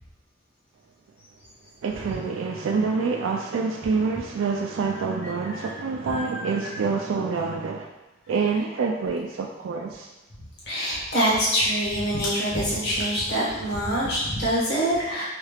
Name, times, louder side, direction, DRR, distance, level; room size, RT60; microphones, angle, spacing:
voice 1, 1.8-7.9 8.3-10.1, right 4 dB, 80° right, 1 dB, 0.3 m, -27 dB
voice 2, 6.1-6.7 10.7-15.2, equal, 60° left, -7 dB, 1.4 m, -25 dB
4.2 x 2.3 x 3.3 m, 1.1 s
head